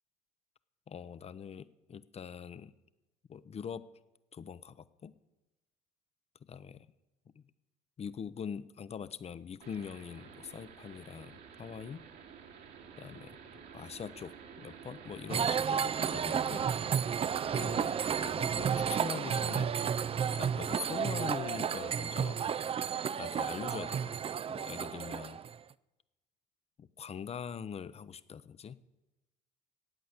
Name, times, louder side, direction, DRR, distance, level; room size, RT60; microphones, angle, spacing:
voice 1, 0.9-2.7 3.3-3.9 4.3-5.1 6.5-6.9 7.4-7.5 8.0-12.1 13.0-13.4 13.7-16.7 17.0-17.2 17.5-19.8 20.3-22.4 23.2-25.4 26.8-28.8, left 7 dB, 35° left, 16 dB, 0.8 m, -43 dB
sound 1, 9.6-18.2, right 6 dB, 65° right, 2.3 m, -51 dB
sound 2, 15.3-25.6, right 7 dB, 35° right, 0.5 m, -32 dB
14.0 x 8.8 x 8.2 m, 1.0 s
supercardioid pair, 80°, 18 cm